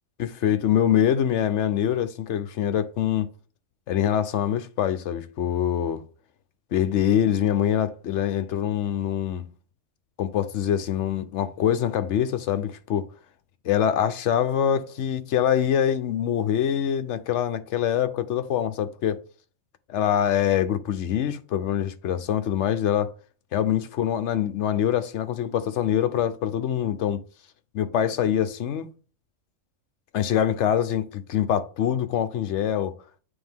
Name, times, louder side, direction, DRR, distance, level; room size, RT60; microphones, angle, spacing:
voice 1, 0.2-3.3 3.9-6.0 6.7-9.4 10.2-13.1 13.6-19.2 19.9-23.1 23.5-27.2 27.7-28.9 30.1-32.9, left 10 dB, 70° left, 1.0 m, -24 dB
9.0 x 3.5 x 3.6 m
omnidirectional pair, 1.3 m